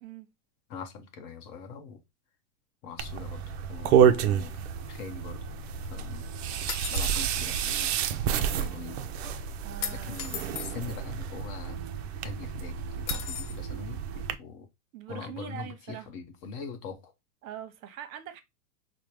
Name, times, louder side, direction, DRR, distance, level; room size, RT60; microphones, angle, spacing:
voice 1, 0.7-2.0 2.8-3.4 3.7-4.6 4.9-5.4 5.9-6.3 6.9-8.0 8.5-9.0 9.9-11.8 12.2-14.7 15.1-17.1, left 5 dB, 35° left, 0.7 m, -42 dB
sound 1, 3.0-14.3, right 8 dB, 45° right, 0.4 m, -29 dB
sound 2, 6.7-7.2 9.8-10.7 13.1-13.6, left 9 dB, 70° left, 0.9 m, -35 dB
voice 2, 9.6-10.2 14.9-16.1 17.4-18.4, right 10 dB, 60° right, 0.8 m, -42 dB
4.5 x 2.1 x 3.1 m
hypercardioid pair, 130°, 46 cm